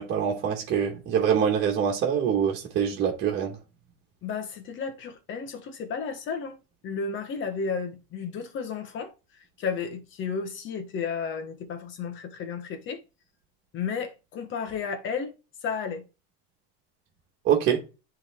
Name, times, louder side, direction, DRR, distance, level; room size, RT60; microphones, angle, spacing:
voice 1, 0.0-3.6 17.5-17.8, right 8 dB, 35° right, 1.9 m, -24 dB
voice 2, 4.2-6.6 6.8-13.0 13.7-15.3 15.6-16.0, left 5 dB, 35° left, 1.4 m, -33 dB
9.9 x 3.7 x 3.7 m
supercardioid pair, 150°, 33 cm